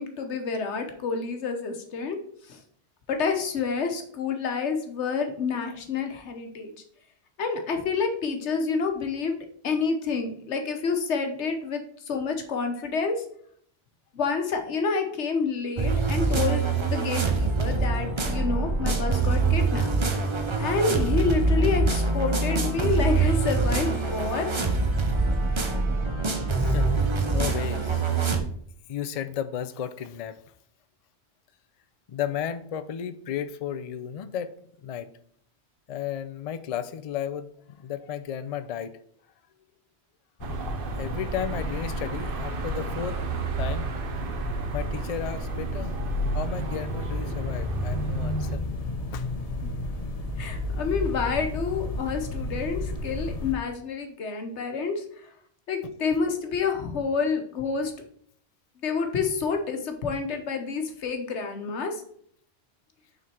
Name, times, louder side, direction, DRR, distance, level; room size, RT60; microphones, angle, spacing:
voice 1, 0.0-2.2 2.5-2.6 3.1-6.7 7.4-9.3 9.6-11.8 12.1-13.2 14.1-19.9 20.6-24.5 49.6-49.7 50.4-55.0 55.7-57.9 58.8-62.0, left 5 dB, 85° left, 5 dB, 1.3 m, -28 dB
sound 1, 15.8-28.4, right 3 dB, 30° right, 0.6 m, -24 dB
voice 2, 26.6-27.0 27.3-28.0 28.9-30.4 32.1-34.5 34.8-35.1 35.9-39.0 41.0-43.2 43.6-43.9 44.7-46.0 46.3-48.6 49.1-49.3 55.8-55.9, left 9 dB, 60° left, 12 dB, 0.4 m, -33 dB
sound 2, 40.4-53.5, left 1 dB, 35° left, 0.8 m, -32 dB
Car passing by / Traffic noise roadway noise / Engine, 40.4-48.6, right 6 dB, 60° right, 0.9 m, -35 dB
6.1 x 3.9 x 4.4 m, 0.62 s
omnidirectional pair, 1.1 m